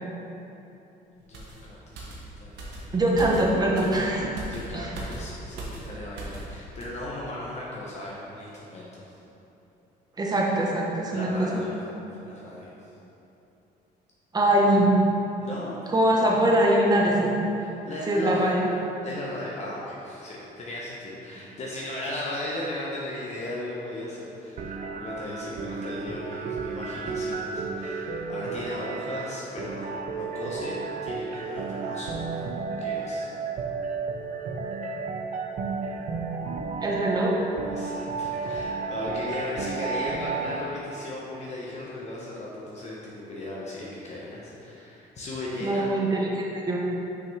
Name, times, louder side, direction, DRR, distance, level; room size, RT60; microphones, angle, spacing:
voice 1, 1.3-3.0 4.1-9.2 11.1-11.7 12.2-12.7 15.4-15.9 17.6-18.5 19.0-30.8 31.0-32.4 32.8-33.3 37.7-45.9, left 1 dB, 40° left, -5 dB, 1.1 m, -36 dB
sound 1, 1.3-6.5 6.8-7.0, right 2 dB, 80° right, 1.3 m, -39 dB
voice 2, 2.9-4.3 4.7-4.9 10.2-11.5 14.3-14.9 15.9-17.3 18.1-18.7 36.8-37.5 45.6-46.8, right 1 dB, 25° right, -2 dB, 1.1 m, -22 dB
sound 2, 24.6-40.6, right 4 dB, 50° right, 0.6 m, -33 dB
6.2 x 5.8 x 3.5 m, 2.9 s
cardioid pair, 110°, 17 cm